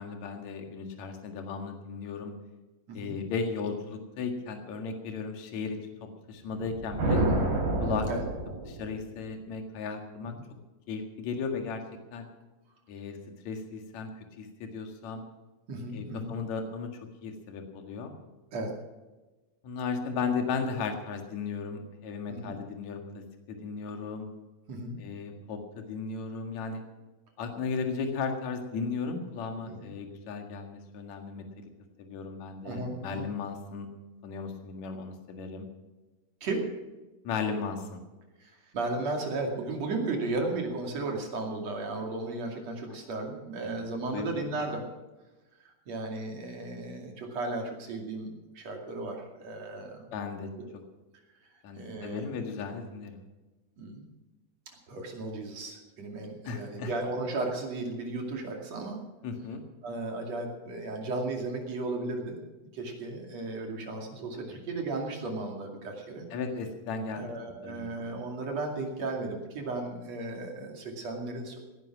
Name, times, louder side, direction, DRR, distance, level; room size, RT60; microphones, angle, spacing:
voice 1, 0.0-2.3 2.9-5.8 6.3-7.2 7.8-8.1 8.6-10.3 10.9-11.8 12.1-12.3 12.9-13.2 13.4-14.1 14.4-15.2 15.9-16.9 17.2-18.1 19.6-23.2 23.5-24.3 25.0-26.8 27.4-31.4 32.0-33.9 34.2-35.7 37.2-38.0 43.6-43.7 44.1-44.4 50.1-50.5 51.6-53.2 56.4-56.9 59.2-59.6 64.5-64.6 66.3-67.3 67.6-67.9, left 5 dB, 55° left, 4 dB, 2.9 m, -35 dB
sound 1, 6.5-9.1, right 2 dB, 75° right, 6.3 m, -28 dB
voice 2, 15.7-16.3 18.5-18.7 22.3-22.5 24.7-25.0 29.7-29.9 32.6-33.3 36.4-36.7 38.4-44.8 45.6-50.1 50.6-50.7 51.7-52.2 53.8-54.0 54.9-59.0 59.8-62.4 62.7-66.3 67.1-71.6, right 2 dB, 50° right, 2 dB, 3.4 m, -35 dB
18.0 x 11.0 x 6.1 m, 1.2 s
omnidirectional pair, 4.1 m